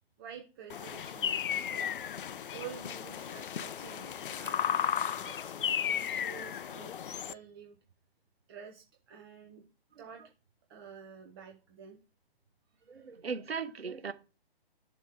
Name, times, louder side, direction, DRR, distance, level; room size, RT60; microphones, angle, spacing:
voice 1, 0.2-2.2 2.5-4.8 5.2-7.8 8.5-9.6 10.0-10.2 10.7-12.0 13.0-13.1, right 8 dB, 25° right, 0.8 m, -49 dB
sound 1, 0.7-7.3, left 9 dB, 60° left, 0.5 m, -34 dB
voice 2, 12.9-14.1, right 5 dB, 75° right, 1.0 m, -38 dB
7.7 x 3.0 x 4.9 m
figure-of-eight pair, 135°, 31 cm